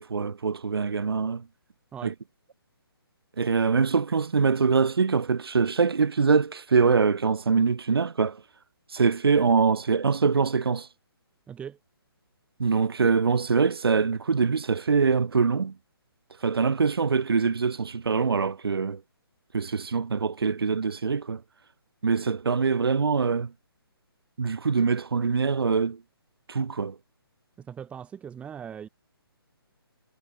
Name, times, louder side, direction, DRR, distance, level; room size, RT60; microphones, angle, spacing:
voice 1, 0.0-1.4 2.0-2.1 3.4-8.4 8.9-10.9 12.6-15.7 16.4-19.0 19.5-21.4 22.0-23.5 24.4-26.0 26.5-27.0, right 5 dB, 70° right, 0.7 m, -24 dB
voice 2, 11.5-11.8 27.6-28.9, right 8 dB, 10° right, 1.5 m, -40 dB
figure-of-eight pair, 135°, 13 cm